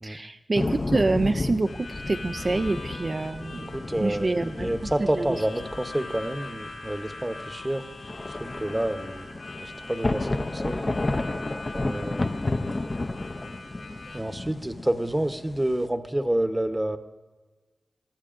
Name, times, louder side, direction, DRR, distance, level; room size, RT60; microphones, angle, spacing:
voice 1, 0.0-3.7 4.0-4.7 5.2-5.3, right 3 dB, 45° right, 7 dB, 0.3 m, -26 dB
sound 1, 0.5-15.9, left 2 dB, 35° left, 0.5 m, -32 dB
Harmonica, 1.6-14.2, left 3 dB, 75° left, 3.9 m, -42 dB
voice 2, 3.7-7.9 8.3-9.3 9.6-10.9 11.7-12.4 14.1-17.0, right 1 dB, 15° right, 9 dB, 0.9 m, -29 dB
22.0 x 14.0 x 2.5 m, 1.3 s
cardioid pair, 50°, 0 cm